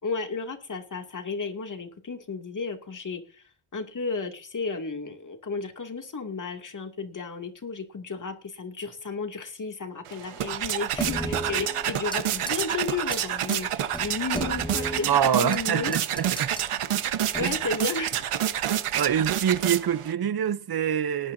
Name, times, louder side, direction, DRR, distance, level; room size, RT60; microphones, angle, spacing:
voice 1, 0.0-3.4 3.7-15.1 15.4-15.9 17.4-18.5, left 4 dB, 40° left, 2.6 m, -33 dB
sound 1, 10.1-20.1, right 10 dB, 85° right, 1.3 m, -28 dB
sound 2, 11.0-12.2 12.5-12.7 13.1-13.2 13.5-13.6 13.9-15.6 15.9-16.7 17.3-17.7, equal, 10° left, 1.5 m, -35 dB
voice 2, 15.0-16.5 17.4-17.6 19.0-21.3, right 8 dB, 50° right, 0.8 m, -25 dB
19.0 x 11.5 x 2.7 m
wide cardioid pair, 110°, 50 cm